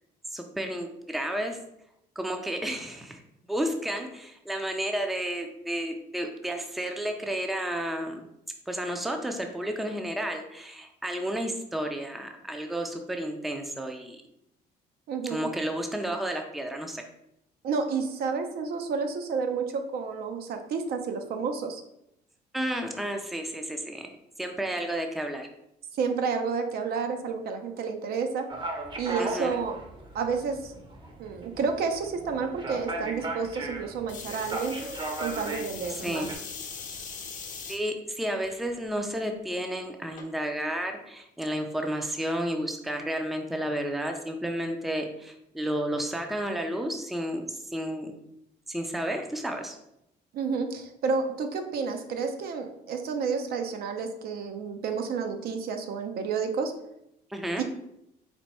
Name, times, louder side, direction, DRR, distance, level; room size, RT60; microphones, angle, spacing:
voice 1, 0.3-1.6 2.2-3.2 3.5-8.2 8.7-14.2 15.3-17.0 22.5-24.1 24.4-25.5 29.2-29.6 36.0-36.3 37.7-48.1 48.7-49.8 57.3-57.6, right 1 dB, ahead, 4 dB, 0.4 m, -32 dB
voice 2, 15.1-15.5 17.6-21.8 25.9-28.5 29.0-29.8 30.1-30.7 31.2-34.8 35.2-36.3 50.3-56.7 57.6-57.7, right 5 dB, 65° right, 6 dB, 0.6 m, -30 dB
sound 1, 28.5-36.4, right 2 dB, 30° right, 0.7 m, -37 dB
sound 2, 34.1-37.8 38.4-38.9 40.2-40.3, left 6 dB, 50° left, 0.8 m, -40 dB
4.3 x 2.2 x 4.1 m, 0.80 s
cardioid pair, 110°, 17 cm